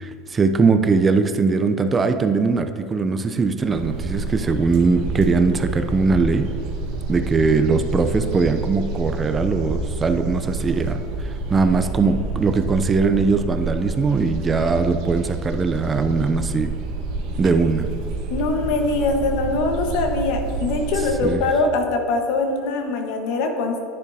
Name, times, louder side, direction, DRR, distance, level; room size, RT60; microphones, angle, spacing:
voice 1, 0.0-6.5 7.1-16.7 17.4-17.8 21.2-21.4, right 4 dB, 20° right, 8 dB, 0.5 m, -20 dB
sound 1, 3.7-21.4, right 3 dB, 65° right, 1.4 m, -28 dB
voice 2, 18.3-23.8, left 3 dB, 65° left, 4 dB, 1.2 m, -22 dB
10.5 x 9.8 x 2.7 m, 2.4 s
supercardioid pair, 135°, 0 cm